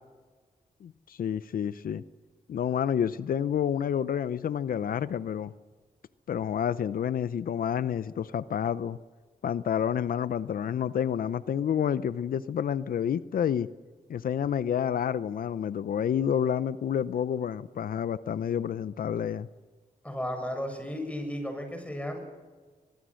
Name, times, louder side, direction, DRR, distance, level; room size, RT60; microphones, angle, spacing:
voice 1, 0.8-2.0 2.5-5.5 6.3-9.0 9.4-13.7 14.1-19.5, left 8 dB, 85° left, 15 dB, 0.6 m, -29 dB
voice 2, 20.0-22.2, equal, 10° left, 5 dB, 7.8 m, -34 dB
23.0 x 22.5 x 6.4 m, 1.4 s
cardioid pair, 65°, 14 cm